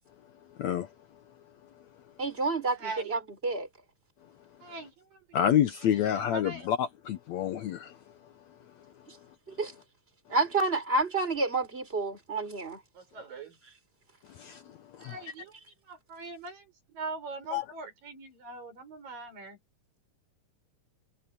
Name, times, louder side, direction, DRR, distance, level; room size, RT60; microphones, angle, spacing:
voice 1, 2.2-3.7 9.6-9.7 10.3-12.8, right 3 dB, 15° right, 4.8 m, -29 dB
voice 2, 2.8-3.2 4.6-6.7 12.9-13.6 15.0-15.6 15.8-19.6, right 3 dB, 85° right, 8.1 m, -42 dB
voice 3, 5.3-7.9 14.4-14.6 15.0-15.1 17.5-17.6, left 10 dB, 70° left, 1.9 m, -28 dB
omnidirectional pair, 3.9 m